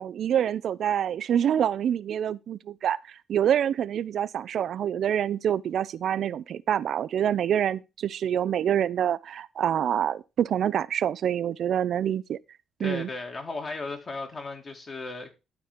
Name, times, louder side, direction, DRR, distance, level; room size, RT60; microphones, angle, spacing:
voice 1, 0.0-3.0 3.3-12.4 12.8-13.1, right 9 dB, 65° right, 0.4 m, -26 dB
voice 2, 12.8-15.3, left 3 dB, 40° left, 2.5 m, -35 dB
12.5 x 4.4 x 5.0 m
cardioid pair, 90°, 0 cm